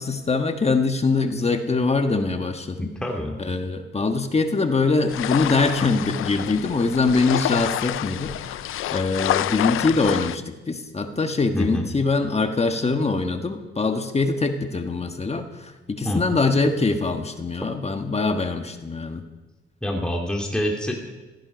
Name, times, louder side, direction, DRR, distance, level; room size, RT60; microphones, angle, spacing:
voice 1, 0.0-2.9 3.4-8.6 8.9-19.2, left 3 dB, 30° left, 6 dB, 1.4 m, -23 dB
voice 2, 2.8-3.4 11.5-11.9 16.0-16.2 19.8-20.9, left 1 dB, 5° left, 0 dB, 2.4 m, -26 dB
sound 1, 5.1-10.4, left 13 dB, 85° left, 0.4 m, -28 dB
16.0 x 14.0 x 5.2 m, 1.2 s
cardioid pair, 100°, 21 cm